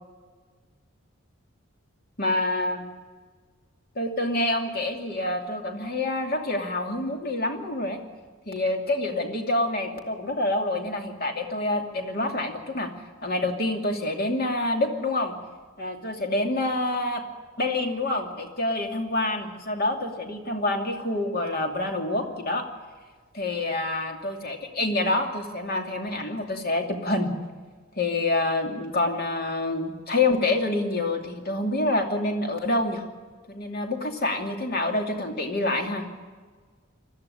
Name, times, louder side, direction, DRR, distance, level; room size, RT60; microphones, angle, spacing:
voice 1, 2.2-2.8 4.0-8.0 8.5-12.9 13.2-15.3 15.8-17.2 17.6-22.7 23.3-27.3 28.0-33.0 33.5-36.1, left 2 dB, 45° left, 3 dB, 2.6 m, -27 dB
20.5 x 14.0 x 10.0 m, 1.5 s
head